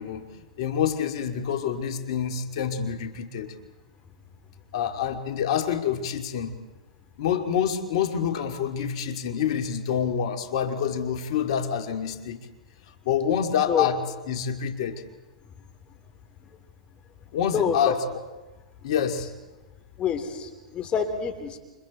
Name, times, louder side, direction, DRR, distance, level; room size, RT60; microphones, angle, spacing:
voice 1, 0.0-3.5 4.7-6.5 7.2-12.4 13.1-14.0 14.3-15.0 17.3-18.0 18.8-19.3, left 8 dB, 60° left, 6 dB, 2.6 m, -27 dB
voice 2, 17.5-17.9 20.0-21.6, left 7 dB, 30° left, 7 dB, 3.5 m, -27 dB
29.0 x 25.5 x 4.4 m, 1.2 s
hypercardioid pair, 110°, 3 cm